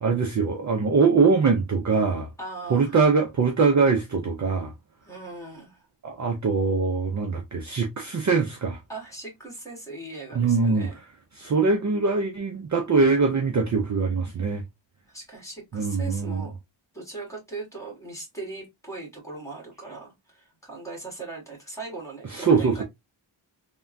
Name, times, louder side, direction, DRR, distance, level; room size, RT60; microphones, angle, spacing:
voice 1, 0.0-2.3 2.7-4.7 6.0-8.8 10.3-10.9 11.4-14.6 15.7-16.4 22.3-22.8, right 4 dB, 40° right, 0.4 m, -22 dB
voice 2, 2.4-3.0 5.0-5.9 8.9-11.0 14.5-14.6 15.1-16.6 16.9-22.8, right 3 dB, 5° left, 1.4 m, -39 dB
3.4 x 2.2 x 2.5 m
wide cardioid pair, 155°, 48 cm